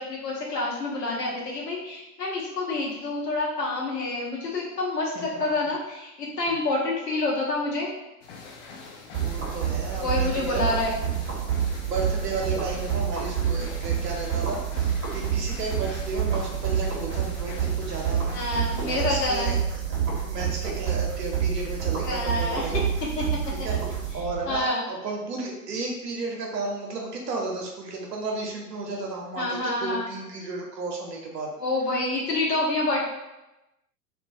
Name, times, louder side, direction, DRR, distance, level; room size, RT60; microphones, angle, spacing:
voice 1, 0.0-7.9 10.0-11.0 13.5-13.6 18.3-19.5 22.0-22.7 23.2-23.3 24.5-24.8 29.4-30.1 31.6-33.0, left 2 dB, 80° left, -4 dB, 0.9 m, -27 dB
sound 1, 8.2-19.6, left 4 dB, 45° left, 0.5 m, -44 dB
sound 2, 9.1-24.6, right 8 dB, 25° right, 0.6 m, -28 dB
voice 2, 9.2-10.7 11.8-18.4 18.8-19.8 20.3-22.8 23.6-31.5, right 3 dB, 85° right, 0 dB, 0.6 m, -33 dB
2.3 x 2.1 x 2.5 m, 0.97 s
figure-of-eight pair, 95°, 48 cm